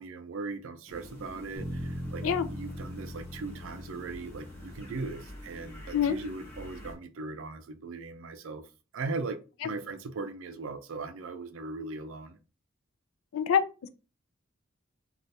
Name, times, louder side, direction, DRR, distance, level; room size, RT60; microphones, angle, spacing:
voice 1, 0.0-8.7 8.9-9.4 9.6-12.4, right 3 dB, 75° right, 0.5 m, -39 dB
sound 1, 0.9-6.9, left 1 dB, 15° left, 0.9 m, -47 dB
sound 2, 1.6-5.7, equal, 20° right, 1.0 m, -40 dB
voice 2, 13.3-13.9, left 8 dB, 85° left, 0.4 m, -26 dB
3.3 x 2.4 x 2.7 m
head